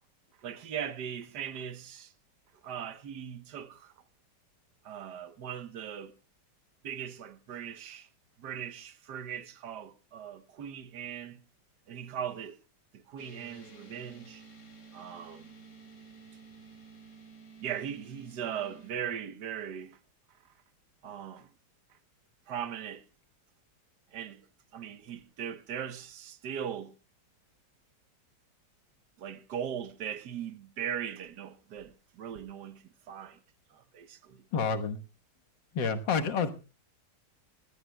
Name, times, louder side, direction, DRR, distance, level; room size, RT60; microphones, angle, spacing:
voice 1, 0.4-2.1 2.6-3.9 4.8-6.1 6.8-8.1 8.4-11.4 11.9-12.6 12.9-14.4 14.9-15.5 17.6-20.0 21.0-21.5 22.5-23.0 24.1-24.4 24.7-26.9 29.2-33.4 33.7-34.4, right 8 dB, 70° right, 1.5 m, -39 dB
sound 1, 13.2-18.9, right 4 dB, 50° left, 3.1 m, -52 dB
voice 2, 34.5-35.0 35.7-36.5, left 5 dB, 80° left, 2.0 m, -28 dB
23.0 x 17.0 x 2.2 m
omnidirectional pair, 1.9 m